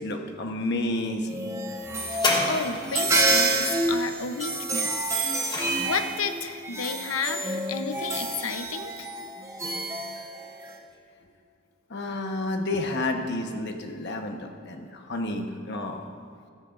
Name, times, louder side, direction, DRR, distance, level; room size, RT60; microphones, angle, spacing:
voice 1, 0.0-1.4 11.9-16.0, left 2 dB, 55° left, 4 dB, 1.1 m, -30 dB
sound 1, 1.3-10.8, right 2 dB, 15° right, 1.1 m, -28 dB
voice 2, 2.1-9.1, left 5 dB, 85° left, 8 dB, 0.8 m, -32 dB
sound 2, 2.1-3.2 4.9-6.3 7.1-7.2, left 2 dB, 20° left, 1.3 m, -29 dB
16.5 x 14.0 x 2.6 m, 2.2 s
head